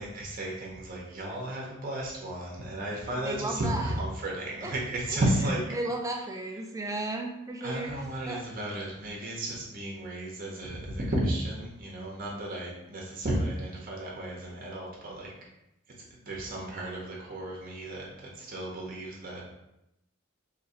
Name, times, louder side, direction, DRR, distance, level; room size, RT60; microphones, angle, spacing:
voice 1, 0.0-5.6 7.6-15.3 16.2-19.5, right 1 dB, 45° right, -3 dB, 0.8 m, -33 dB
voice 2, 3.1-3.9 4.6-4.7 5.1-5.2 5.7-7.9 8.3-8.4, right 2 dB, 15° right, 1 dB, 0.5 m, -34 dB
2.9 x 2.7 x 4.2 m, 0.85 s
head